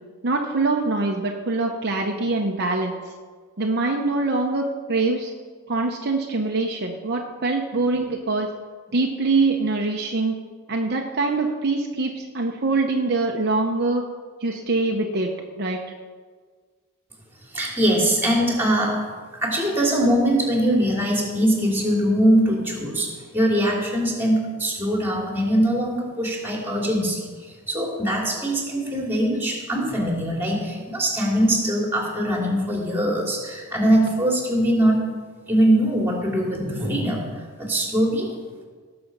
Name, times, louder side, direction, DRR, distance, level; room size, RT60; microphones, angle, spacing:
voice 1, 0.2-3.0 3.6-5.3 5.7-8.5 8.9-10.4 10.7-14.0 14.4-15.3 15.6-15.8, right 3 dB, 50° right, 1 dB, 0.9 m, -24 dB
voice 2, 17.5-19.0 19.4-23.1 23.3-27.3 27.7-35.0 35.5-37.3 37.6-38.4, right 1 dB, 10° right, -1 dB, 2.8 m, -22 dB
18.0 x 6.9 x 5.4 m, 1.5 s
head